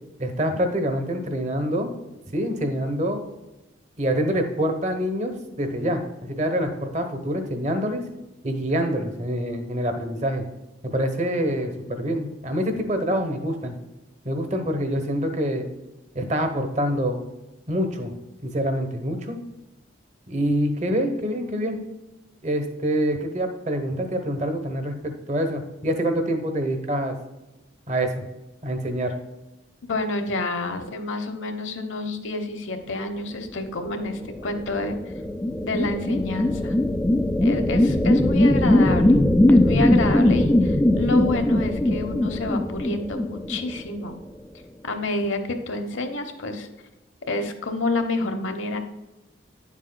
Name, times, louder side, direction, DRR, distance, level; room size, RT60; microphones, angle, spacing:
voice 1, 0.2-1.9 2.3-3.2 4.0-8.0 8.4-10.4 10.8-13.7 14.2-15.7 16.1-17.2 17.7-18.1 18.4-19.4 20.3-21.8 22.4-27.1 27.9-28.2 28.6-29.2, equal, 35° right, 6 dB, 0.9 m, -26 dB
voice 2, 29.9-35.0 35.6-36.8 37.4-39.1 39.5-44.1 44.8-46.7 47.3-48.8, left 2 dB, 80° left, 6 dB, 1.0 m, -28 dB
sound 1, 34.3-44.0, left 1 dB, 10° left, 0.3 m, -20 dB
10.0 x 7.3 x 2.2 m, 1.0 s
head